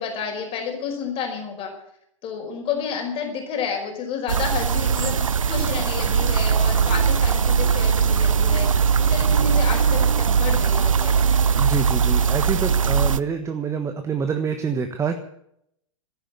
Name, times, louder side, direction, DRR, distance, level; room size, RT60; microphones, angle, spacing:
voice 1, 0.0-1.7 2.2-5.2 5.5-8.7 9.0-11.3, left 6 dB, 35° left, 2 dB, 5.2 m, -30 dB
sound 1, 4.3-13.2, right 6 dB, 80° right, 0.7 m, -20 dB
voice 2, 11.6-15.2, right 6 dB, 15° right, 7 dB, 1.4 m, -26 dB
14.5 x 10.5 x 9.5 m, 0.73 s
figure-of-eight pair, 105°, 17 cm